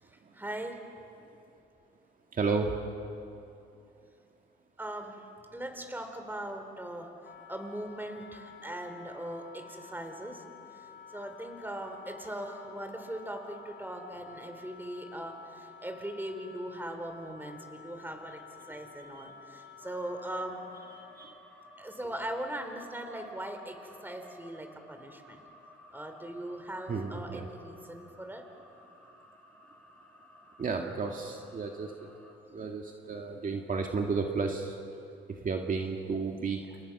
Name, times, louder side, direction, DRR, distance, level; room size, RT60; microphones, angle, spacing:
voice 1, 0.1-0.8 4.8-5.2 5.5-7.1 7.5-10.4 10.7-20.6 21.8-25.4 25.9-28.5, right 1 dB, 10° right, 5 dB, 3.8 m, -40 dB
voice 2, 2.3-2.8 19.2-19.3 20.9-21.3 26.9-27.5 30.6-32.1 32.5-34.8 35.3-36.7, right 4 dB, 45° right, 2 dB, 2.1 m, -33 dB
Wind instrument woodwind instrument, 7.2-21.3, left 6 dB, 65° left, 1.9 m, -51 dB
sound 1, 19.8-32.3, left 1 dB, 10° left, 7.3 m, -56 dB
29.0 x 28.5 x 6.1 m, 2.6 s
cardioid pair, 90°, 20 cm